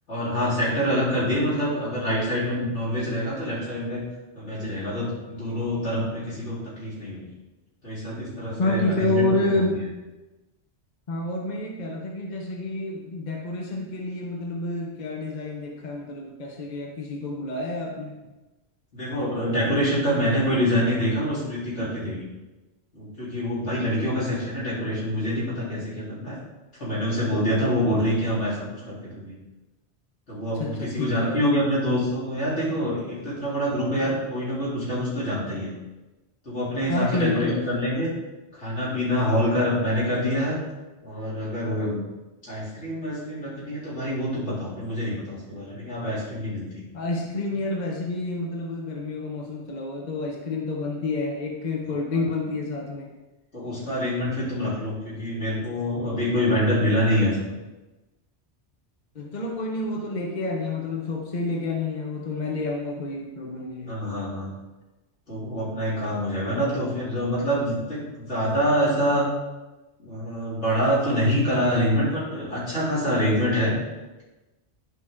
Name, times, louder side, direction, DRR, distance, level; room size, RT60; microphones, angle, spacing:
voice 1, 0.1-4.0 4.3-7.3 7.8-9.6 18.9-22.3 22.9-26.4 26.8-29.3 30.3-35.7 36.5-38.1 38.5-40.6 41.0-42.0 42.4-46.8 52.1-52.2 53.5-57.5 63.9-64.5 65.3-69.3 70.0-73.7, equal, 75° left, -9 dB, 3.6 m, -26 dB
voice 2, 8.6-9.8 11.1-18.2 30.5-31.4 36.9-37.7 46.9-53.1 59.1-64.0, left 2 dB, 40° left, 0 dB, 1.0 m, -29 dB
11.0 x 5.2 x 3.7 m, 1.1 s
omnidirectional pair, 1.2 m